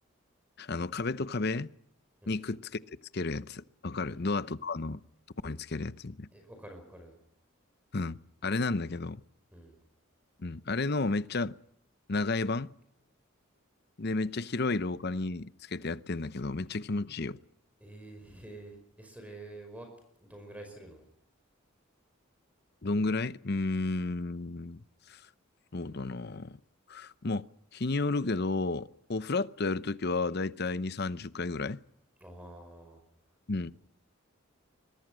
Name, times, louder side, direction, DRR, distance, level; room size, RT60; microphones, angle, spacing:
voice 1, 0.6-1.7 2.3-2.8 3.1-5.0 5.4-6.3 7.9-9.2 10.4-11.6 12.1-12.7 14.0-17.4 22.8-24.8 25.1-25.2 25.7-26.6 26.9-27.5 27.7-31.8 33.5-33.7, left 3 dB, 50° left, 0.8 m, -32 dB
voice 2, 6.3-7.2 9.5-9.8 17.8-19.9 20.2-21.0 32.2-33.0, right 1 dB, 5° right, 5.2 m, -48 dB
25.5 x 22.0 x 6.2 m
head